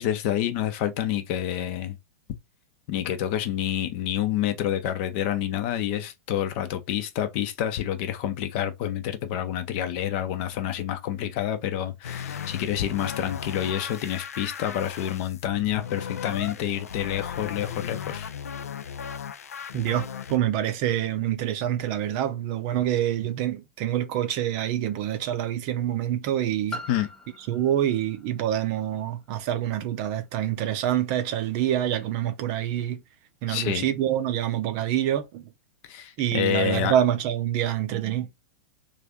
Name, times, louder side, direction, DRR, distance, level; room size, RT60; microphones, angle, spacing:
voice 1, 0.0-2.0 2.9-18.3 26.9-27.1 33.5-33.8 35.8-36.9, left 11 dB, 45° left, 0.7 m, -28 dB
sound 1, 12.0-20.4, left 7 dB, 70° left, 0.4 m, -36 dB
voice 2, 19.7-26.8 27.5-33.0 33.4-35.4 36.2-38.3, right 11 dB, 45° right, 0.6 m, -26 dB
Piano, 26.7-32.1 32.9-33.0, left 2 dB, 10° left, 0.6 m, -45 dB
3.2 x 2.6 x 3.6 m
figure-of-eight pair, 95°, 8 cm